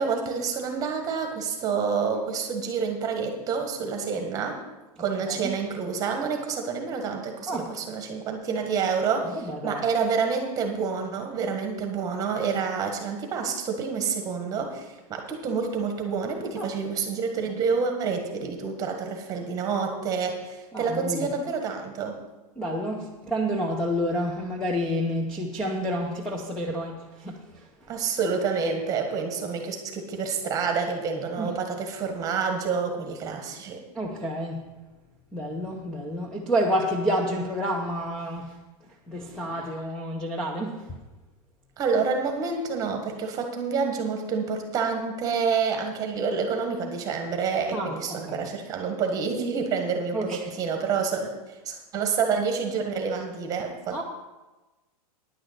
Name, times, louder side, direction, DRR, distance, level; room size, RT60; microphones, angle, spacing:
voice 1, 0.0-4.6 5.0-22.2 27.9-33.8 41.8-54.0, right 5 dB, 20° right, 4 dB, 1.5 m, -28 dB
voice 2, 9.3-9.8 16.6-16.7 20.7-21.3 22.6-27.6 31.4-31.5 33.9-34.7 35.3-38.5 39.1-40.8 47.7-47.9 48.3-48.5 50.1-50.5 53.9-54.0, equal, 5° left, -1 dB, 0.7 m, -29 dB
10.0 x 6.2 x 7.9 m, 1.1 s
supercardioid pair, 160°, 20 cm